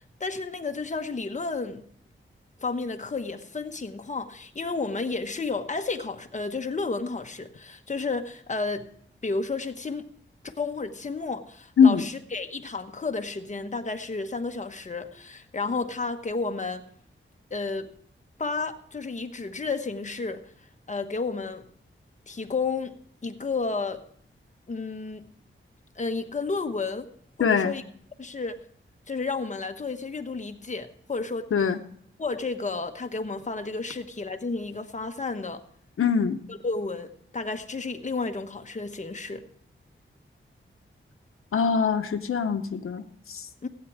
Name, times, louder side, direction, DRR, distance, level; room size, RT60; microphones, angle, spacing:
voice 1, 0.2-1.9 2.6-8.9 9.2-10.1 10.4-16.8 17.5-17.9 18.4-20.4 20.9-21.6 22.3-22.9 23.2-24.0 24.7-25.3 26.0-27.1 27.4-27.8 28.2-28.6 29.1-31.5 32.2-35.6 36.5-39.4 43.6-43.7, left 4 dB, 35° left, 7 dB, 1.1 m, -32 dB
voice 2, 27.4-27.8 31.5-31.8 36.0-36.4 41.5-43.7, left 6 dB, 85° left, 7 dB, 0.8 m, -23 dB
16.0 x 9.1 x 4.8 m, 0.65 s
wide cardioid pair, 130°, 21 cm